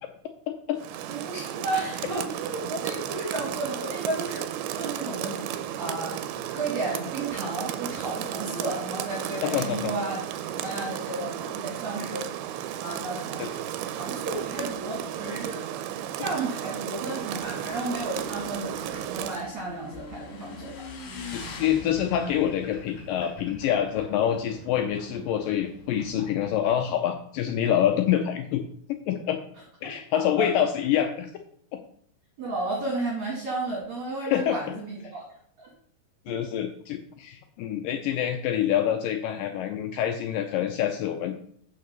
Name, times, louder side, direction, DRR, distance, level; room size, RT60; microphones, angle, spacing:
Rain, 0.8-19.5, right 10 dB, 80° right, 2.5 m, -34 dB
voice 1, 1.1-6.1 6.5-10.1 10.5-12.3 12.8-13.4 13.9-15.6 16.2-20.8 29.8-30.5 32.4-35.2 35.6-35.7 36.3-36.4, right 2 dB, 50° right, -3 dB, 2.7 m, -33 dB
voice 2, 9.4-9.9 13.4-13.5 21.3-28.6 29.1-29.4 29.8-31.3 34.2-34.6 36.3-41.3, left 10 dB, 85° left, 6 dB, 1.9 m, -26 dB
Motorcycle / Engine, 17.3-26.6, left 3 dB, 60° left, 3.1 m, -44 dB
sound 1, 21.4-27.1, left 2 dB, 40° left, 3.6 m, -49 dB
6.5 x 5.8 x 6.7 m, 0.64 s
omnidirectional pair, 4.7 m